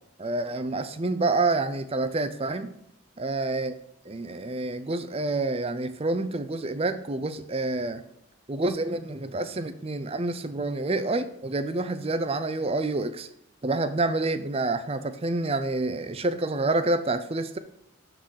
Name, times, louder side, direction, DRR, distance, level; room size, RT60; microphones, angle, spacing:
voice 1, 0.2-2.7 3.2-3.7 4.1-8.0 8.5-13.3 13.6-17.6, right 2 dB, 30° right, 11 dB, 0.5 m, -28 dB
11.5 x 4.0 x 6.4 m, 0.79 s
head